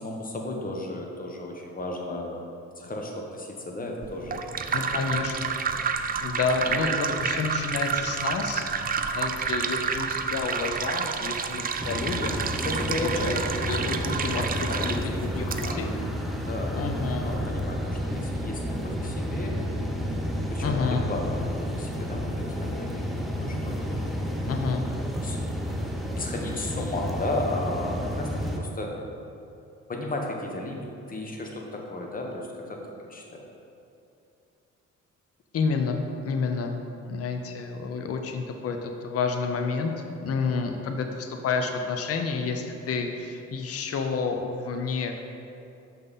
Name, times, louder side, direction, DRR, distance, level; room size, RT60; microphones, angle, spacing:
voice 1, 0.0-2.4 2.8-4.4 4.7-4.9 12.6-15.8 16.5-16.8 17.2-19.5 20.5-23.8 25.2-25.5 26.2-28.9 29.9-33.4, left 2 dB, 30° left, 0 dB, 1.1 m, -34 dB
sound 1, 4.0-15.7, right 6 dB, 30° right, 0.4 m, -29 dB
voice 2, 4.7-5.5 6.2-8.7 9.1-12.5 13.0-13.4 13.7-16.0 16.7-17.3 20.6-21.1 24.5-24.8 35.5-36.8 37.1-39.9 40.2-45.2, left 4 dB, 50° left, 4 dB, 0.7 m, -30 dB
sound 2, 11.8-28.6, equal, ahead, 0.8 m, -31 dB
6.7 x 5.5 x 4.1 m, 2.8 s
cardioid pair, 90°, 30 cm